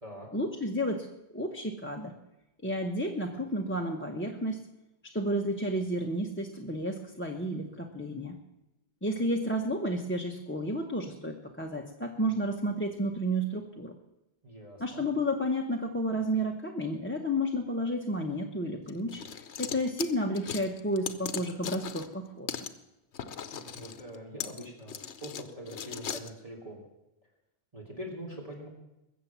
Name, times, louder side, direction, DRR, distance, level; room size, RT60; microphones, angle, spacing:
voice 1, 0.3-1.1 1.3-2.1 2.6-4.7 5.0-8.4 9.0-13.9 14.8-19.2 19.6-22.5, equal, 10° left, 0 dB, 1.0 m, -31 dB
voice 2, 14.4-15.0 23.5-26.8 27.7-28.7, equal, 30° right, -2 dB, 3.0 m, -43 dB
sound 1, 18.9-22.2 22.5-22.7 23.1-26.3, left 8 dB, 85° left, 1.2 m, -39 dB
21.5 x 7.4 x 7.3 m, 0.93 s
omnidirectional pair, 1.1 m